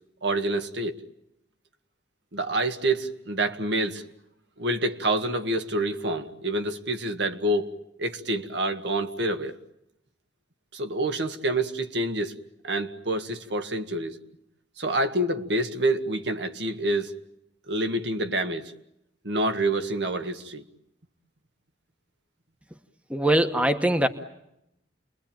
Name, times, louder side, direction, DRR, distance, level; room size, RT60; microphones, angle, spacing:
voice 1, 0.2-1.0 2.3-4.0 4.6-9.6 10.7-12.4 12.6-14.2 14.8-17.2 17.7-18.7 19.2-20.6, right 1 dB, 65° right, 1.8 m, -27 dB
voice 2, 23.1-24.1, right 1 dB, 5° right, 1.2 m, -22 dB
30.0 x 22.5 x 9.0 m
head